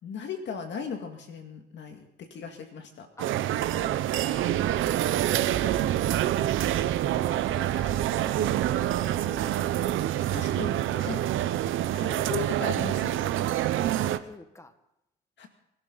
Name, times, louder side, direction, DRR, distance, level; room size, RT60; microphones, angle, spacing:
voice 1, 0.0-3.1 10.3-11.3 11.9-13.3 15.4-15.5, left 6 dB, 65° left, 4 dB, 2.1 m, -37 dB
voice 2, 3.2-11.2 13.6-14.7, left 2 dB, 15° left, 9 dB, 1.7 m, -49 dB
sound 1, 3.2-14.2, right 12 dB, 80° right, 0.8 m, -26 dB
sound 2, 3.5-13.5, right 8 dB, 55° right, 1.0 m, -42 dB
27.0 x 12.5 x 4.0 m, 0.85 s
cardioid pair, 90°, 20 cm